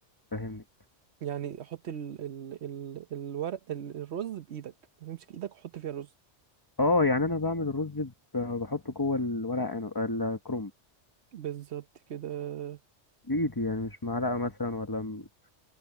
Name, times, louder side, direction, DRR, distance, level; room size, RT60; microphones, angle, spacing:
voice 1, 0.3-0.6 6.8-10.7 13.3-15.3, left 2 dB, 20° left, 1.2 m, -29 dB
voice 2, 1.2-4.7 5.0-6.1 11.3-12.8, right 10 dB, 65° right, 1.1 m, -37 dB
open air
omnidirectional pair, 1.2 m